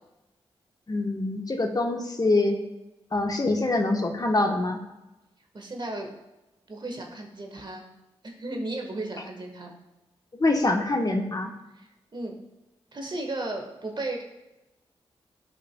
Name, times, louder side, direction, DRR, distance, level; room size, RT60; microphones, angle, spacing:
voice 1, 0.9-2.6 3.1-4.8 10.4-11.5, left 2 dB, 35° left, 3 dB, 1.1 m, -25 dB
voice 2, 5.5-6.1 6.7-7.9 8.2-9.8 11.8-12.4 12.9-14.2, right 2 dB, 45° right, 2 dB, 1.4 m, -35 dB
12.0 x 5.2 x 2.2 m, 0.99 s
supercardioid pair, 45°, 11 cm